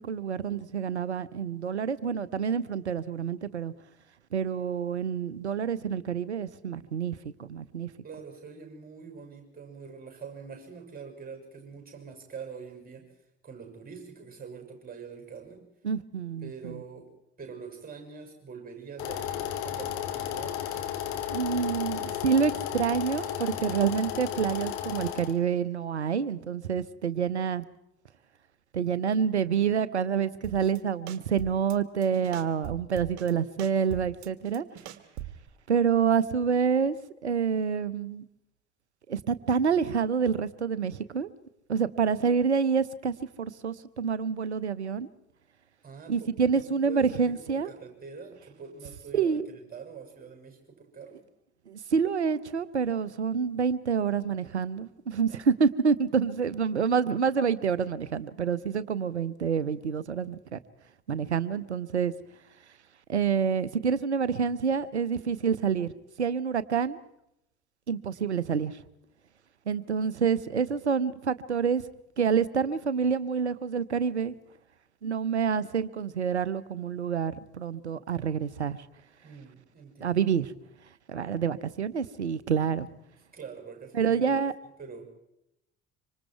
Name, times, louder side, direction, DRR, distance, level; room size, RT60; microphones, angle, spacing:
voice 1, 0.0-3.7 4.3-7.9 15.8-16.8 21.3-27.7 28.7-34.6 35.7-37.0 37.2-38.2 39.1-41.3 41.7-45.1 46.1-47.7 49.1-49.5 51.7-60.6 61.1-62.1 63.1-65.9 66.2-67.0 67.9-68.8 69.7-71.8 72.2-74.3 75.0-78.8 80.0-80.5 81.1-82.9 83.9-84.5, right 6 dB, 85° right, 18 dB, 0.8 m, -27 dB
voice 2, 8.0-13.1 13.4-15.7 16.4-17.1 17.4-20.6 45.8-51.2 55.2-55.5 68.2-68.3 79.2-80.2 83.3-84.3 84.8-85.1, right 5 dB, 25° right, 4 dB, 6.4 m, -45 dB
sound 1, 19.0-25.3, left 10 dB, 60° left, 2.5 m, -33 dB
sound 2, 30.4-30.8 31.1-31.8 32.0-33.3 33.6-35.5, right 12 dB, 55° right, 1.6 m, -41 dB
25.5 x 25.5 x 4.6 m, 0.82 s
figure-of-eight pair, 55°, 33 cm